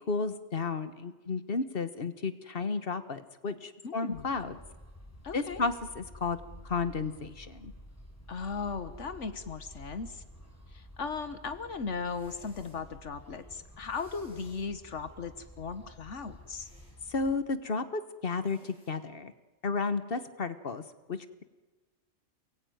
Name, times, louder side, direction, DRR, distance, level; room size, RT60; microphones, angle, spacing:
voice 1, 0.1-4.6 5.3-6.4 6.6-7.7 17.1-19.3 19.6-20.8 21.1-21.4, left 4 dB, 50° left, 11 dB, 1.4 m, -33 dB
voice 2, 3.8-4.3 5.2-5.6 8.3-10.2 10.7-16.7, left 5 dB, 75° left, 10 dB, 1.5 m, -37 dB
sound 1, 4.1-17.4, equal, 10° left, 4.7 m, -51 dB
Person Blowing Their Nose, 12.0-12.8 13.8-14.7 16.5-17.0 18.4-18.9, equal, 5° right, 8.0 m, -61 dB
28.5 x 21.0 x 9.3 m, 1.3 s
omnidirectional pair, 1.3 m